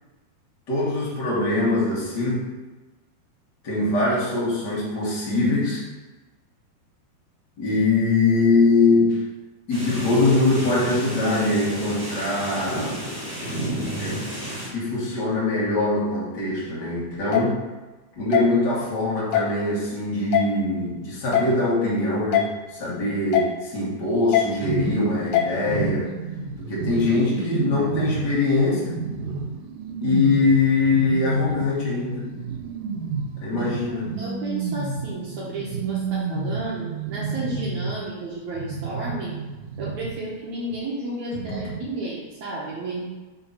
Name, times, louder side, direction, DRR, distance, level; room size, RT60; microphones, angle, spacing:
voice 1, 0.7-2.5 3.6-5.8 7.6-9.2 9.7-13.1 13.9-14.2 14.5-17.6 18.2-26.1 26.6-29.0 30.0-32.4 33.4-34.1, left 3 dB, 55° left, -5 dB, 1.2 m, -22 dB
sound 1, 9.7-14.7, right 1 dB, 25° right, 1.7 m, -32 dB
sound 2, 17.3-17.4 18.3-18.4 19.3-19.5 20.3-20.4 21.3-21.5 22.3-22.5 23.3-23.5 24.3-24.5 25.3-25.5, left 11 dB, 80° left, 2.7 m, -20 dB
sound 3, 24.6-38.2 38.5-40.4 40.7-40.8, right 5 dB, 85° right, 2.5 m, -31 dB
voice 2, 33.9-39.4 39.8-43.0, right 2 dB, 70° right, -6 dB, 1.9 m, -32 dB
5.7 x 3.9 x 5.6 m, 1.2 s
omnidirectional pair, 4.5 m